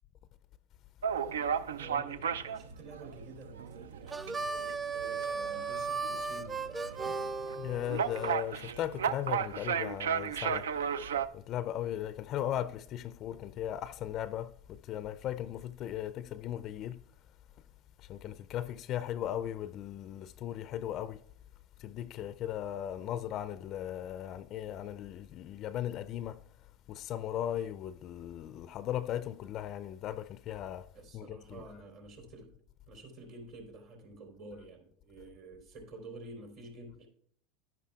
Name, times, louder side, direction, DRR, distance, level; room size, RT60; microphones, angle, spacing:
sound 1, 1.0-11.3, right 7 dB, 85° right, 0.3 m, -35 dB
voice 1, 1.7-6.6 7.0-7.2 30.9-32.5 32.9-37.1, right 2 dB, 55° right, 3.4 m, -49 dB
Harmonica, 4.1-8.3, right 4 dB, 20° right, 0.5 m, -36 dB
voice 2, 7.6-10.7 11.3-17.0 18.0-21.2 21.8-26.4 26.9-30.9 31.1-31.6, left 11 dB, 45° left, 0.4 m, -37 dB
11.0 x 10.0 x 2.3 m
hypercardioid pair, 95°, 0 cm